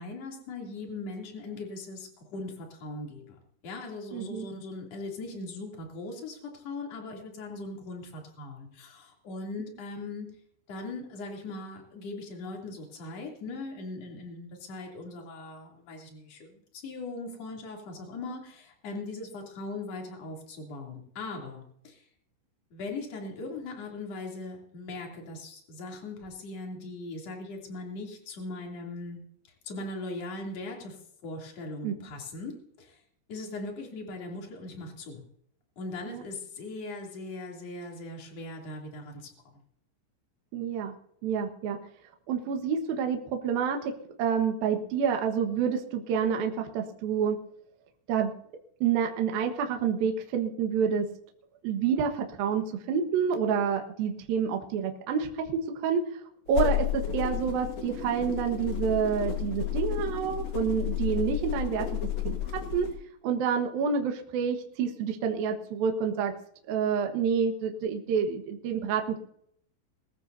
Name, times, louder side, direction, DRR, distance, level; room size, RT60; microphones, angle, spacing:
voice 1, 0.0-3.4 3.6-10.3 10.7-22.1 22.7-29.2 29.6-33.0 33.3-35.2 35.8-39.3, left 2 dB, 40° left, 0 dB, 3.4 m, -39 dB
voice 2, 4.1-4.5 31.8-31.9 36.1-36.2 40.5-40.9 41.2-41.8 42.3-43.9 44.2-47.4 48.1-48.3 48.8-51.1 51.6-56.1 56.5-62.0 62.2-62.9 63.2-66.3 66.7-69.2, right 7 dB, 65° right, 4 dB, 2.6 m, -28 dB
sound 1, 56.5-63.0, left 10 dB, 75° left, 1.5 m, -32 dB
22.0 x 14.0 x 2.7 m, 0.69 s
omnidirectional pair, 5.6 m